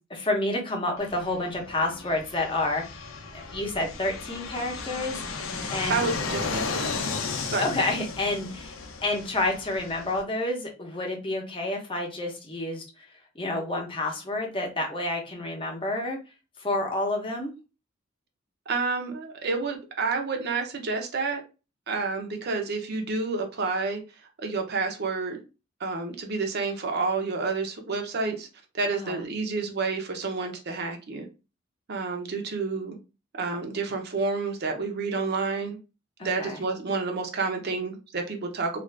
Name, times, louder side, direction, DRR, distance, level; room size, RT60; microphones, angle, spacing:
voice 1, 0.1-3.0 3.3-6.1 7.6-8.7 9.0-12.8 13.3-16.2 16.6-17.5 28.9-29.2 36.2-36.6, left 2 dB, 25° left, 0.7 m, -29 dB
Fixed-wing aircraft airplane, 1.0-10.2, left 4 dB, 85° left, 0.6 m, -34 dB
voice 2, 5.9-6.8 7.5-7.7 18.7-21.4 21.9-24.0 24.4-25.4 25.8-28.5 28.7-31.3 31.9-33.0 33.4-35.8 36.2-38.8, right 4 dB, 55° right, 0.7 m, -29 dB
2.5 x 2.4 x 3.2 m
head